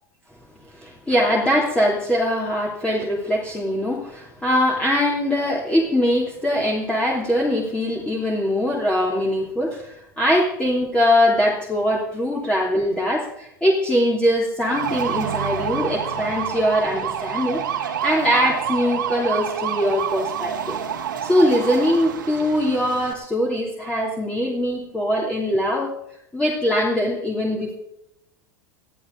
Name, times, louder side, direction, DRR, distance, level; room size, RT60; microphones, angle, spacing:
voice 1, 0.7-17.6 18.0-20.8 21.2-25.9 26.3-27.7, equal, 10° left, -2 dB, 3.1 m, -22 dB
sound 1, 14.6-23.1, right 8 dB, 80° right, 2.1 m, -28 dB
21.5 x 14.5 x 3.9 m, 0.80 s
hypercardioid pair, 85°, 10 cm